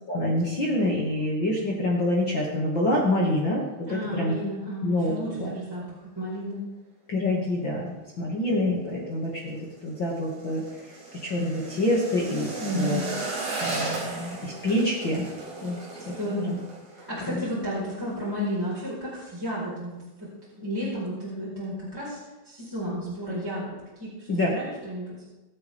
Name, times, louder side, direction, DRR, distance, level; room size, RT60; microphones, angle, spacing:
voice 1, 0.1-4.3 4.8-5.5 7.1-7.9 8.2-9.6 9.8-10.6 11.2-13.0 13.6-15.3 15.6-15.8 16.1-16.2 16.5-16.6 17.3-17.4 24.3-24.5, left 1 dB, 40° left, -4 dB, 1.8 m, -26 dB
voice 2, 3.9-6.6 12.6-13.0 16.2-16.6 16.9-22.2 22.4-23.7 24.0-25.2, equal, 5° right, -9 dB, 4.1 m, -32 dB
sound 1, 9.1-18.2 18.4-18.8 19.1-19.6 19.9-20.0, right 3 dB, 70° right, 6.2 m, -36 dB
24.0 x 8.4 x 3.5 m, 1.1 s
omnidirectional pair, 4.6 m